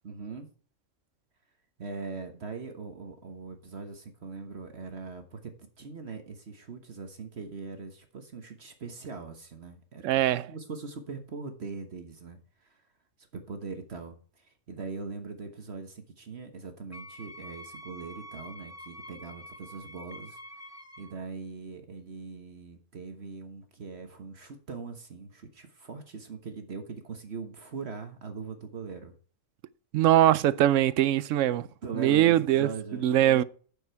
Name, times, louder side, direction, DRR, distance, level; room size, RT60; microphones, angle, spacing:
voice 1, 0.0-0.5 1.8-10.0 10.5-12.8 13.3-20.4 21.0-29.1 31.8-33.4, right 4 dB, 55° right, 1.5 m, -41 dB
voice 2, 10.0-10.5 29.9-31.7 32.0-33.4, right 12 dB, 75° right, 0.9 m, -22 dB
Wind instrument woodwind instrument, 16.9-21.2, equal, 15° left, 0.8 m, -46 dB
9.6 x 6.9 x 4.6 m
omnidirectional pair, 1.3 m